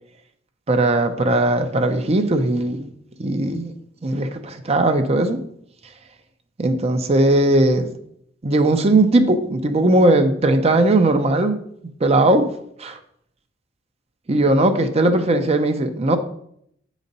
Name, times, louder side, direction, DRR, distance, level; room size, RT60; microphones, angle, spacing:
voice 1, 0.7-2.9 3.2-3.7 4.0-5.4 6.6-7.9 8.4-11.6 12.0-12.5 12.8-13.0 14.3-16.2, right 2 dB, 35° right, 0.6 m, -18 dB
8.2 x 4.1 x 5.3 m
head